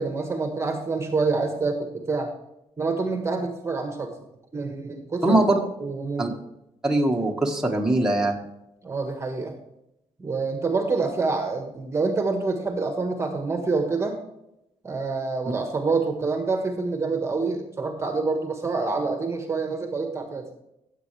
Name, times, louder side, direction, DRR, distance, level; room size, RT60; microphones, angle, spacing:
voice 1, 0.0-2.3 2.8-4.1 4.5-5.4 5.8-6.3 8.8-9.5 10.2-14.2 14.8-20.5, right 3 dB, 20° right, 4 dB, 1.4 m, -27 dB
voice 2, 5.2-5.6 6.2-6.3 6.8-8.4, right 1 dB, 5° right, -1 dB, 1.5 m, -21 dB
16.0 x 7.8 x 3.3 m, 0.85 s
cardioid pair, 130°, 12 cm